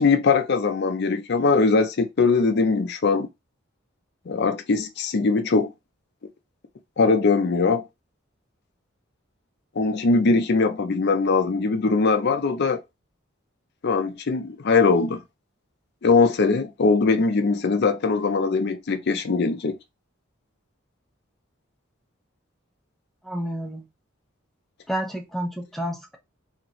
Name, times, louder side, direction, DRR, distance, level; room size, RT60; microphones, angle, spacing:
voice 1, 0.0-3.3 4.3-5.7 7.0-7.8 9.8-12.8 13.8-15.2 16.0-19.8, left 4 dB, 55° left, 0.5 m, -21 dB
voice 2, 23.2-23.8 24.9-26.2, equal, ahead, 0.5 m, -30 dB
2.9 x 2.5 x 2.9 m
head